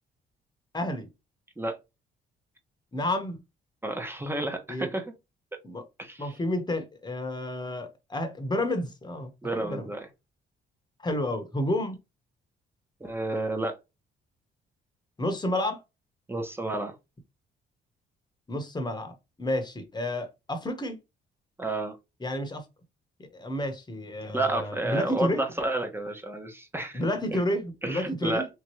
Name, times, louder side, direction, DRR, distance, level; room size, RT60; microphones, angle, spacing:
voice 1, 0.7-1.1 2.9-3.4 4.7-4.9 5.6-5.8 6.2-9.9 11.0-12.0 15.2-15.8 18.5-21.0 22.2-22.6 23.2-25.4 26.9-28.4, left 1 dB, 20° left, 1.1 m, -30 dB
voice 2, 3.8-5.1 6.0-6.4 9.4-10.1 13.0-13.8 16.3-16.9 21.6-22.0 24.3-27.0 27.3-27.4 27.8-28.5, right 2 dB, 10° right, 1.1 m, -31 dB
3.6 x 3.0 x 3.0 m
cardioid pair, 90°, 20 cm